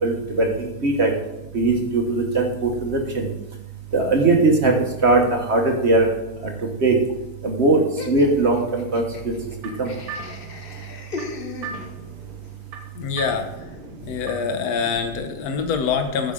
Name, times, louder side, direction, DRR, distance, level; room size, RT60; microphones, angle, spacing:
voice 1, 0.0-1.1 1.5-3.3 3.9-4.8 5.0-6.1 6.4-7.0 7.4-7.8 8.1-9.3 9.8-9.9, right 2 dB, 40° right, 2 dB, 1.0 m, -20 dB
Laughter, 8.0-12.2, left 3 dB, 90° left, 0.5 m, -37 dB
sound 1, 9.2-14.6, right 4 dB, 90° right, 2.0 m, -39 dB
voice 2, 12.9-13.5 14.0-16.3, left 6 dB, 55° left, 7 dB, 1.2 m, -25 dB
14.5 x 5.6 x 3.8 m, 0.98 s
omnidirectional pair, 2.4 m